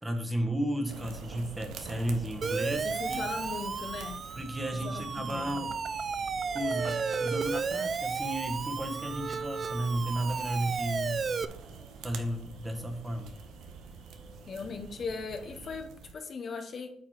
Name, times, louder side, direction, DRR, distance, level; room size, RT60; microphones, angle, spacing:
voice 1, 0.0-3.3 4.4-5.8 6.5-11.2 12.0-13.3, right 1 dB, 15° right, 5 dB, 1.3 m, -33 dB
sound 1, 0.8-15.8, right 3 dB, 75° right, 2.5 m, -54 dB
sound 2, 0.9-16.1, right 5 dB, 90° right, 0.8 m, -48 dB
Siren, 2.4-11.5, right 5 dB, 45° right, 0.4 m, -33 dB
voice 2, 2.8-4.2 4.7-5.6 14.5-16.9, left 4 dB, 50° left, 6 dB, 1.0 m, -39 dB
8.6 x 3.2 x 6.3 m, 0.70 s
cardioid pair, 90°, 0 cm